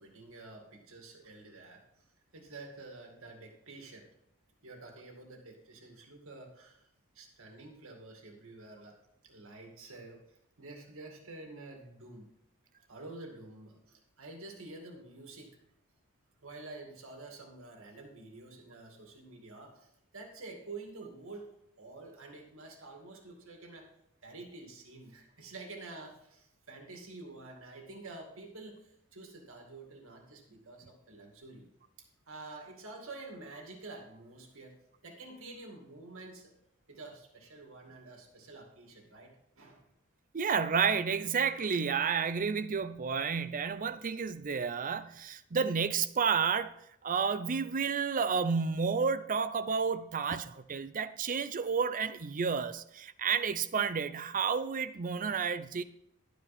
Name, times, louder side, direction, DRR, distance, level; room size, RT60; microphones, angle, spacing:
voice 1, 0.0-1.8 2.3-4.1 4.6-6.9 7.1-9.0 9.2-12.3 12.9-15.6 16.4-21.5 21.8-23.9 24.2-31.7 32.3-34.8 35.0-36.5 36.9-39.9, right 2 dB, 65° right, 2.2 m, -49 dB
voice 2, 40.3-46.7 47.0-55.8, right 6 dB, 40° right, 0.6 m, -31 dB
12.0 x 9.4 x 4.3 m
head